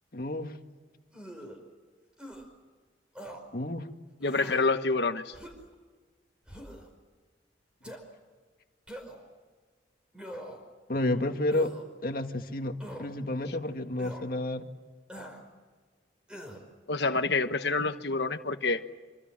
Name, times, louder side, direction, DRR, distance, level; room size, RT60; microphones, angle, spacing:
voice 1, 0.1-0.6 3.5-3.9 7.9-8.0 10.9-11.7 12.0-14.7, left 1 dB, 55° left, 5 dB, 1.9 m, -31 dB
sound 1, 1.1-1.6 2.2-2.4 3.1-3.4 4.2-4.7 5.3-5.7 6.5-6.9 7.8-8.0 8.9-9.3 10.1-10.7 11.5-11.8 12.8-13.1 14.0-14.2 15.1-15.4 16.3-16.6, equal, 5° right, 5.0 m, -43 dB
voice 2, 4.2-5.3 16.9-18.8, left 3 dB, 70° left, 7 dB, 1.2 m, -27 dB
27.0 x 25.5 x 7.5 m, 1.4 s
head